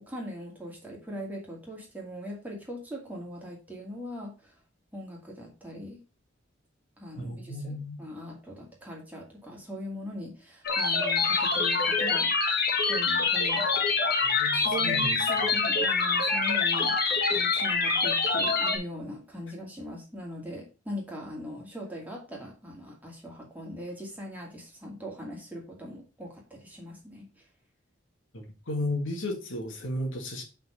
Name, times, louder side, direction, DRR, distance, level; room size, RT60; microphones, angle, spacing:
voice 1, 0.1-4.5 4.9-6.0 7.0-12.4 12.9-13.9 14.5-17.0 17.3-27.5, equal, 10° right, 2.3 m, -40 dB
voice 2, 7.2-8.0 14.2-15.2 28.3-30.4, left 1 dB, 80° left, 1.8 m, -34 dB
sound 1, 10.7-18.8, left 4 dB, 55° left, 1.6 m, -25 dB
5.7 x 4.5 x 5.4 m
head